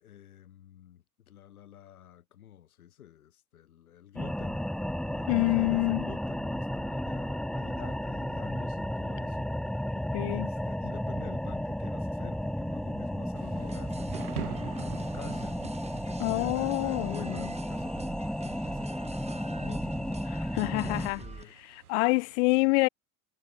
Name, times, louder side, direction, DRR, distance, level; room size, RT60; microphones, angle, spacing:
voice 1, 0.0-4.6 5.1-9.5 10.3-15.6 16.1-21.6, left 11 dB, 75° left, 1.5 m, -49 dB
sound 1, 4.2-21.1, equal, ahead, 1.2 m, -33 dB
voice 2, 5.3-6.0 10.1-10.5 16.2-17.2 20.3-21.2 21.6-22.9, left 27 dB, 50° left, 0.5 m, -26 dB
Thunder / Rain, 13.4-22.4, right 9 dB, 75° right, 3.3 m, -47 dB
sound 2, 13.6-21.4, right 5 dB, 15° right, 1.4 m, -44 dB
figure-of-eight pair, 70°, 44 cm